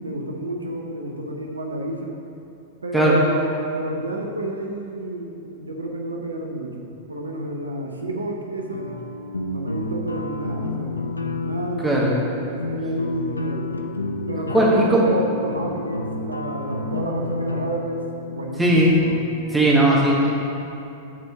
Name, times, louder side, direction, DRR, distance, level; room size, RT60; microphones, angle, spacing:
voice 1, 0.0-2.2 2.8-8.9 9.5-13.7 14.3-18.7, right 2 dB, 80° right, 1 dB, 0.7 m, -30 dB
sound 1, 8.7-19.2, left 2 dB, 85° left, 0.5 m, -30 dB
voice 2, 11.8-12.1 14.5-15.0 18.6-18.9 19.5-20.5, right 1 dB, 5° right, -5 dB, 1.8 m, -18 dB
8.6 x 4.3 x 5.7 m, 2.8 s
figure-of-eight pair, 95°, 0 cm